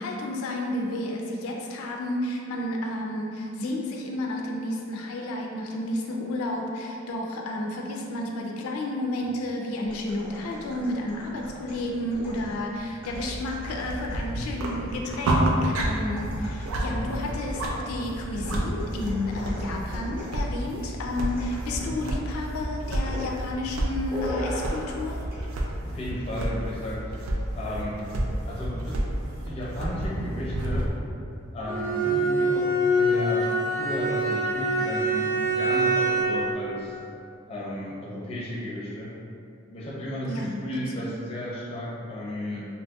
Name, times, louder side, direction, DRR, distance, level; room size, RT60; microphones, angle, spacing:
voice 1, 0.0-25.2 40.2-40.6 40.9-41.2, left 1 dB, 90° left, 1 dB, 0.3 m, -31 dB
sound 1, 9.8-16.9 18.4-20.5 21.3-22.0 22.3-22.6 23.1-23.3 24.1-25.0 25.3-25.5, equal, 10° right, 0.7 m, -39 dB
sound 2, 13.1-30.9, right 1 dB, 75° right, 0.3 m, -30 dB
voice 2, 25.9-28.0 28.5-29.0 29.4-30.8 31.5-36.9 37.5-39.1 39.7-42.7, left 1 dB, 30° left, -6 dB, 0.5 m, -34 dB
Bowed string instrument, 31.6-36.5, right 1 dB, 45° right, 0.7 m, -24 dB
2.7 x 2.7 x 2.2 m, 2.5 s
head